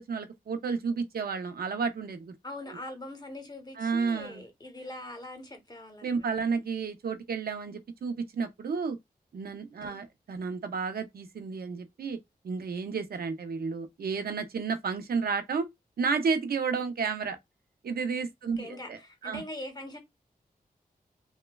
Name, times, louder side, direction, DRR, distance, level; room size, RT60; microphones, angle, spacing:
voice 1, 0.0-2.3 2.7-2.8 3.8-4.4 6.0-9.0 9.3-12.2 12.4-15.7 16.0-17.4 17.8-19.4, right 5 dB, 75° right, 0.6 m, -32 dB
voice 2, 2.4-6.3 9.8-10.0 18.6-20.0, left 1 dB, 25° left, 0.9 m, -42 dB
3.0 x 2.1 x 2.2 m
cardioid pair, 65°, 16 cm